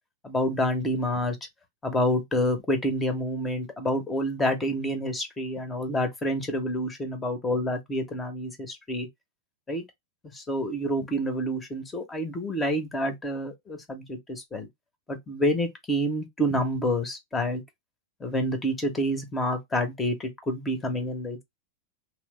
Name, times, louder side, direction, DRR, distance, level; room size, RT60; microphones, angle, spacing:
voice 1, 0.2-1.4 1.8-9.1 9.7-9.8 10.3-14.7 15.1-17.6 18.2-21.4, equal, 15° left, 0.9 m, -28 dB
3.1 x 2.0 x 3.0 m
figure-of-eight pair, 90°, 0 cm